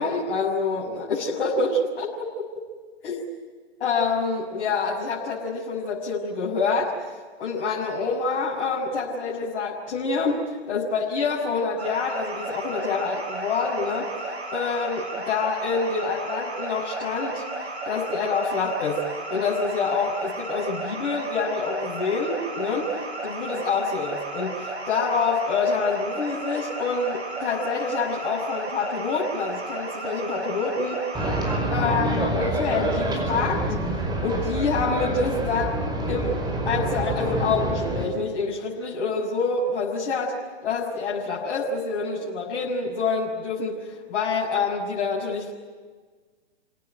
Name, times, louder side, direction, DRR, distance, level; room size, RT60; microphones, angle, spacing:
voice 1, 0.0-2.3 3.0-3.2 3.8-6.9 7.4-14.1 14.5-17.4 17.8-19.0 19.3-22.9 23.2-31.0 31.7-33.6 34.2-35.8 36.1-36.4 36.6-40.3 40.6-45.5, left 4 dB, 55° left, -5 dB, 6.2 m, -26 dB
sound 1, 11.8-31.6, right 2 dB, 70° right, 6.9 m, -34 dB
sound 2, 31.1-38.1, right 1 dB, 10° right, 5.0 m, -26 dB
29.5 x 18.0 x 9.2 m, 1.4 s
hypercardioid pair, 125°, 34 cm